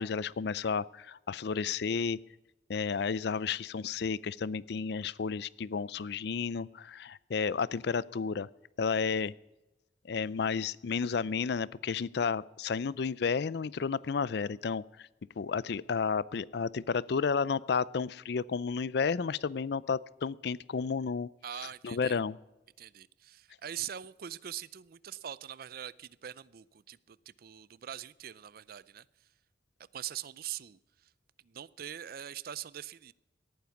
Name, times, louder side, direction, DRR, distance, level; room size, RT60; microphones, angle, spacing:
voice 1, 0.0-2.2 2.7-8.5 8.8-9.3 10.0-15.1 15.4-21.3 21.6-22.4, left 5 dB, 65° left, 21 dB, 0.4 m, -32 dB
voice 2, 21.4-22.2 22.8-29.0 29.9-30.8 31.4-33.1, right 10 dB, 55° right, 20 dB, 0.4 m, -43 dB
17.5 x 9.3 x 5.9 m, 0.98 s
head